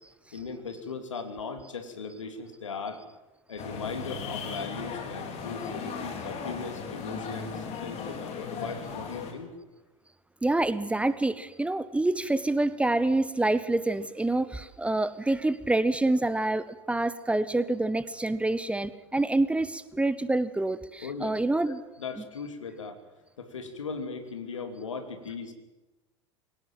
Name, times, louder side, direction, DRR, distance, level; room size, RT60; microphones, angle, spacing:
voice 1, 0.3-3.0 3.5-9.5 21.0-21.4 21.7-23.0 23.4-25.5, left 5 dB, 75° left, 7 dB, 2.9 m, -38 dB
sound 1, 3.6-9.3, left 5 dB, 40° left, 4.3 m, -37 dB
voice 2, 10.4-21.8, right 2 dB, 5° right, 15 dB, 0.9 m, -27 dB
23.0 x 17.5 x 7.7 m, 1.1 s
figure-of-eight pair, 80°, 16 cm